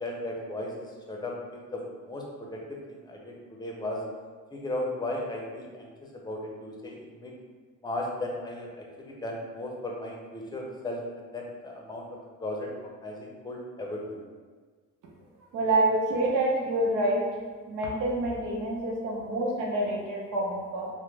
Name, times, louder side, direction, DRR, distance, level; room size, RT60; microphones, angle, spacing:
voice 1, 0.0-1.3 1.7-2.8 3.1-4.0 4.5-5.9 6.1-7.3 7.8-12.1 12.4-14.2, left 1 dB, 15° left, -1 dB, 0.6 m, -36 dB
voice 2, 15.5-17.2 17.7-20.9, right 1 dB, 85° right, -2 dB, 0.7 m, -27 dB
2.9 x 2.1 x 3.3 m, 1.5 s
cardioid pair, 90°, 30 cm